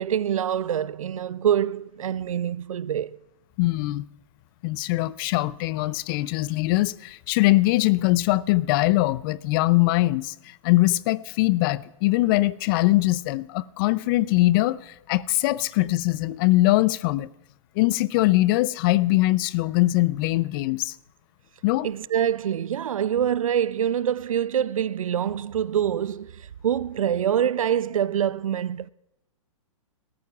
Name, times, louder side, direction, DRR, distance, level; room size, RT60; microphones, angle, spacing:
voice 1, 0.0-3.2 21.8-28.9, right 9 dB, 85° right, 0.4 m, -25 dB
voice 2, 3.6-4.0 4.6-17.3 17.8-21.0 21.6-21.9, left 18 dB, 40° left, 0.5 m, -22 dB
21.0 x 13.5 x 2.4 m
hypercardioid pair, 120°, 17 cm